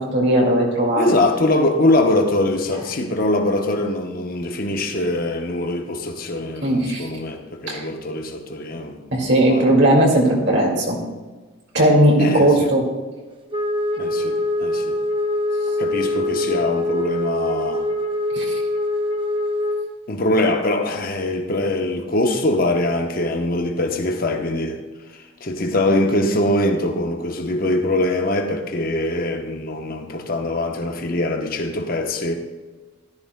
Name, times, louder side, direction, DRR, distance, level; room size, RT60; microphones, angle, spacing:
voice 1, 0.0-1.1 6.6-7.1 7.7-7.8 9.1-11.0 11.7-12.8 18.3-18.6, right 1 dB, 55° right, 2.1 m, -17 dB
voice 2, 1.0-9.1 9.5-9.8 12.2-12.7 14.0-15.0 15.8-17.8 20.1-24.8 25.4-32.4, left 1 dB, 45° left, 0.9 m, -22 dB
Wind instrument woodwind instrument, 13.5-19.9, left 1 dB, 25° right, 0.7 m, -23 dB
14.0 x 12.5 x 2.2 m
head